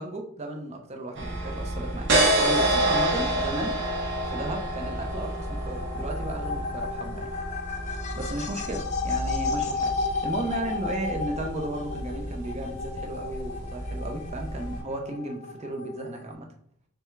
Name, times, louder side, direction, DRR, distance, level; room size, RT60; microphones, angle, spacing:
voice 1, 0.0-3.8 4.3-7.3 8.1-16.5, right 1 dB, 30° right, 2 dB, 0.6 m, -34 dB
sound 1, 1.1-14.8, right 1 dB, 55° right, 0.9 m, -29 dB
sound 2, 5.1-16.3, left 4 dB, 35° left, 0.4 m, -34 dB
3.4 x 3.2 x 3.1 m, 0.67 s
head